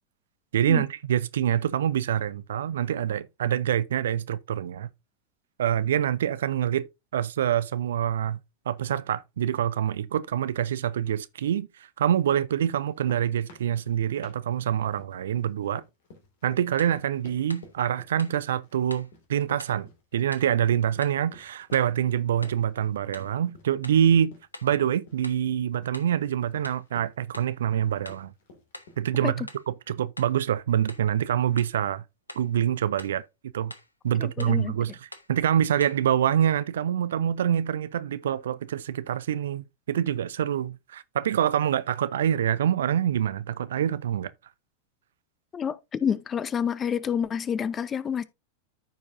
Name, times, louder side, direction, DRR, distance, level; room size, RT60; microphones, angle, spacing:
voice 1, 0.5-4.9 5.6-6.9 7.1-8.4 8.7-11.7 12.0-15.8 16.4-24.3 24.6-28.3 29.0-29.5 29.9-32.0 32.4-33.2 33.5-33.7 34.0-34.9 35.3-44.3, right 10 dB, 60° right, 0.5 m, -26 dB
sound 1, 12.8-29.2, left 2 dB, 55° left, 2.2 m, -53 dB
sound 2, 16.8-17.0 17.5-17.7 18.2-18.4 18.9-19.1 19.6-19.8 20.3-20.5 21.0-21.2 21.7-22.0 22.4-22.7 23.1-23.4 23.8-24.1 24.5-24.8 25.2-25.5 25.9-26.2 26.6-26.9 27.3-27.6 28.1-28.3 28.7-29.0 29.5-29.7 30.2-30.4 30.9-31.1 31.6-31.8 32.3-32.5 33.0-33.2 33.7-34.0 34.4-34.6 35.1-35.3 35.8-36.1, left 1 dB, 85° left, 0.8 m, -45 dB
voice 2, 34.2-34.8 45.5-48.2, left 7 dB, 25° left, 0.6 m, -28 dB
14.0 x 4.7 x 2.6 m
figure-of-eight pair, 90°, 0 cm